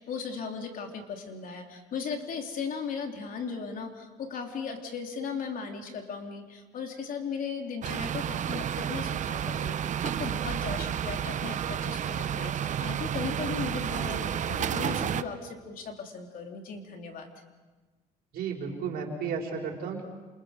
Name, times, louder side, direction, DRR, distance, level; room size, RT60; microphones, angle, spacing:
voice 1, 0.0-17.3, left 5 dB, 55° left, 3 dB, 3.3 m, -37 dB
sound 1, 7.8-15.2, right 9 dB, 45° right, 0.8 m, -31 dB
voice 2, 18.3-20.0, right 6 dB, 70° right, 1 dB, 5.0 m, -33 dB
28.0 x 28.0 x 5.1 m, 1.3 s
cardioid pair, 110°, 17 cm